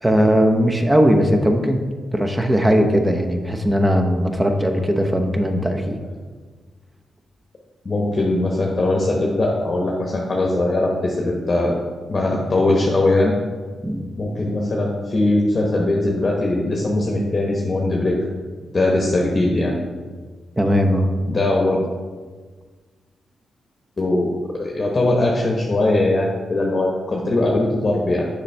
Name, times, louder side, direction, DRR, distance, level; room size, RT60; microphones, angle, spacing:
voice 1, 0.0-1.8 2.1-5.9 13.8-14.0 20.6-21.1, equal, 15° right, 4 dB, 0.9 m, -18 dB
voice 2, 7.8-11.8 12.1-13.4 14.2-18.2 18.7-19.7 21.3-21.9 24.0-28.3, left 2 dB, 40° left, -2 dB, 1.0 m, -20 dB
6.6 x 5.4 x 3.3 m, 1.5 s
cardioid pair, 60°, 0 cm